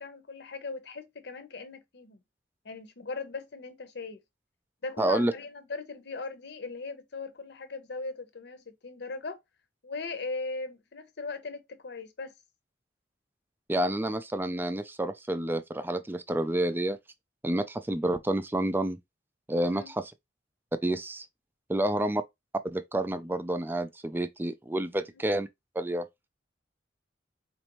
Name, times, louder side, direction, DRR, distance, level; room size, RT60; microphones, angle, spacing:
voice 1, 0.0-2.2 2.6-4.2 4.8-9.4 9.8-12.3 19.7-19.9 21.8-22.0 25.1-25.2, left 3 dB, 65° left, 0.8 m, -39 dB
voice 2, 5.0-5.3 13.7-17.0 17.4-19.0 19.5-20.1 20.8-21.3 21.7-22.2 22.6-25.5 25.8-26.1, right 1 dB, 10° right, 0.4 m, -29 dB
4.2 x 2.6 x 2.9 m
head